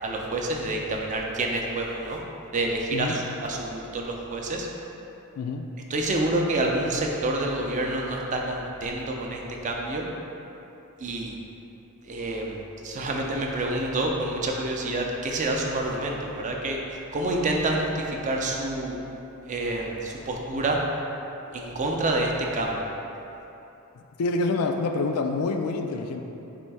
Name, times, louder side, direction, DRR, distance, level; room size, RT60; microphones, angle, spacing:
voice 1, 0.0-2.2 2.5-4.7 5.9-10.1 11.0-11.3 12.1-16.8 17.1-19.0 19.5-20.8 21.5-22.8, right 2 dB, 35° right, 0 dB, 0.4 m, -28 dB
voice 2, 5.4-5.7 24.2-26.2, left 3 dB, 75° left, 5 dB, 0.4 m, -27 dB
4.3 x 2.6 x 4.6 m, 3.0 s
head